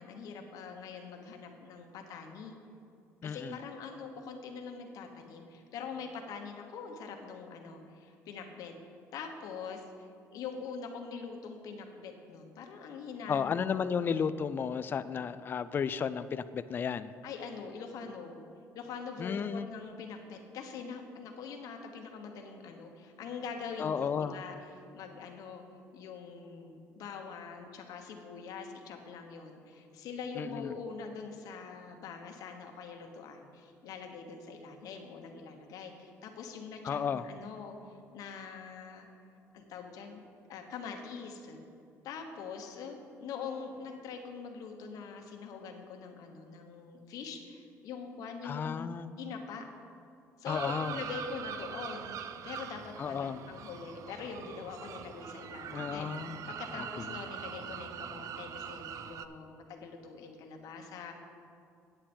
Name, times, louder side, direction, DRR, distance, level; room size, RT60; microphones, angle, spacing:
voice 1, 0.0-2.5 3.2-8.7 9.1-13.5 13.9-14.2 17.2-18.4 18.7-25.6 25.9-39.1 39.5-40.2 40.5-41.6 42.0-48.9 49.2-49.6 50.4-52.2 52.4-56.1 56.5-61.1, left 5 dB, 70° left, 3 dB, 1.2 m, -43 dB
voice 2, 3.2-3.6 13.3-17.1 19.2-19.7 23.8-24.4 30.4-30.7 36.8-37.2 48.4-49.1 50.5-51.0 53.0-53.4 55.7-56.5 56.7-57.2, left 7 dB, 35° left, 13 dB, 0.3 m, -33 dB
sound 1, 50.5-59.3, right 8 dB, 60° right, 0.4 m, -43 dB
9.1 x 8.8 x 4.4 m, 2.4 s
cardioid pair, 115°, 6 cm